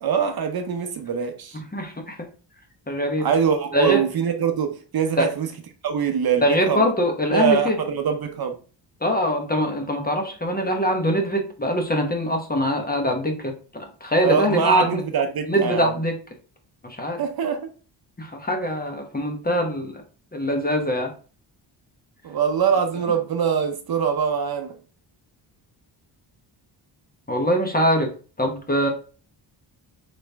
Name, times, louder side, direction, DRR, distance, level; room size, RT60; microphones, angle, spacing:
voice 1, 0.0-1.6 3.2-5.5 5.8-6.8 7.3-8.6 14.2-15.9 17.2-17.7 22.2-24.8, right 7 dB, 50° right, 0.7 m, -23 dB
voice 2, 1.5-2.2 2.9-3.3 3.7-4.0 5.2-5.3 6.4-7.8 9.0-15.0 15.5-16.2 16.8-17.2 18.2-20.0 20.3-21.1 27.3-28.1 28.4-28.9, equal, 20° left, 1.0 m, -23 dB
4.2 x 3.0 x 3.3 m
cardioid pair, 100°, 47 cm